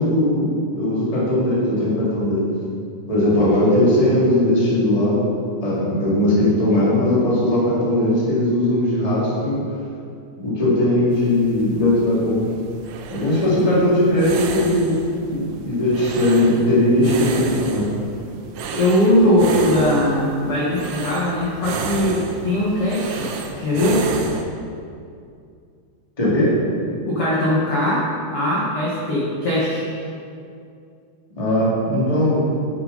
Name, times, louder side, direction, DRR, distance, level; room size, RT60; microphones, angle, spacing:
voice 1, 0.0-2.4 3.1-5.2 5.6-9.6 10.4-12.4 13.1-15.0 15.3-17.9 26.2-26.5 31.4-32.5, left 1 dB, 15° left, -8 dB, 1.1 m, -19 dB
sound 1, 11.1-24.4, right 4 dB, 85° right, 2.1 m, -32 dB
voice 2, 18.7-23.3 23.5-24.0 27.0-28.1 28.3-29.9, left 1 dB, 70° left, -7 dB, 1.3 m, -20 dB
11.5 x 7.2 x 4.1 m, 2.4 s
omnidirectional pair, 5.0 m